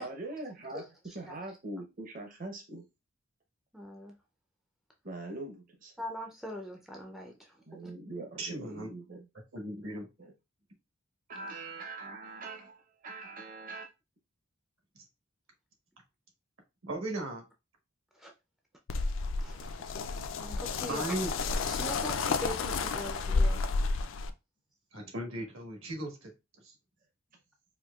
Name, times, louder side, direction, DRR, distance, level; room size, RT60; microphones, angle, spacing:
voice 1, 0.0-0.8 1.1-2.9 5.0-5.9 7.7-9.2 10.2-10.3 11.3-13.9, right 2 dB, 40° right, 0.7 m, -42 dB
voice 2, 0.7-1.4 3.7-4.2 6.0-7.9 18.1-18.3 19.4-19.8 20.4-21.2 21.6-23.6, equal, ahead, 0.4 m, -42 dB
voice 3, 8.4-8.9 9.5-10.1 16.9-17.4 20.9-21.3 24.9-26.3 26.6-26.7, right 1 dB, 65° right, 1.2 m, -36 dB
sound 1, 18.9-24.3, left 4 dB, 65° left, 0.4 m, -31 dB
4.4 x 2.7 x 2.3 m
head